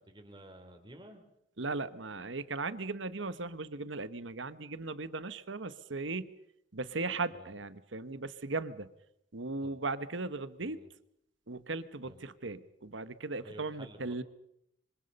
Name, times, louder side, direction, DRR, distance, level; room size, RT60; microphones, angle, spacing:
voice 1, 0.1-1.3 7.4-7.5 9.6-9.8 10.6-10.9 12.0-12.2 13.4-14.2, right 1 dB, 25° right, 5 dB, 3.4 m, -52 dB
voice 2, 1.6-6.3 6.7-8.9 9.3-10.8 11.5-14.2, right 3 dB, 80° right, 14 dB, 1.2 m, -37 dB
26.0 x 25.0 x 5.4 m, 0.77 s
head